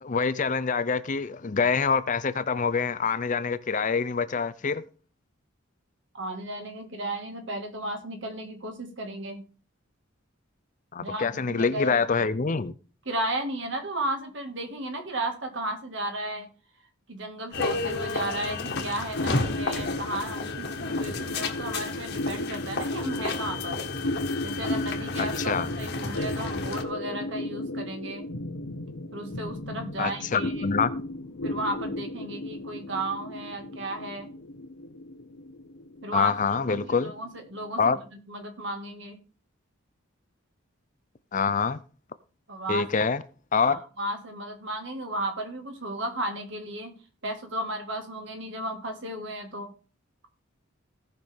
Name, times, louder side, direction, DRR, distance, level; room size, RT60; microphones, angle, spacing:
voice 1, 0.0-4.8 10.9-12.7 25.2-25.7 30.0-30.9 36.1-37.1 37.8-38.0 41.3-41.8 42.7-43.2 43.5-43.8, left 5 dB, 40° left, 0.5 m, -26 dB
voice 2, 6.1-9.4 11.0-12.0 13.1-16.5 17.1-23.8 24.4-28.3 29.1-30.7 31.4-34.3 36.0-36.4 36.7-38.0 38.3-39.2 42.5-42.9 43.6-47.0 47.2-49.7, right 1 dB, 60° right, 1.9 m, -34 dB
sound 1, 17.5-26.8, left 3 dB, 55° left, 1.7 m, -32 dB
sound 2, 19.1-37.9, left 1 dB, 70° left, 1.1 m, -35 dB
17.0 x 5.9 x 3.6 m
head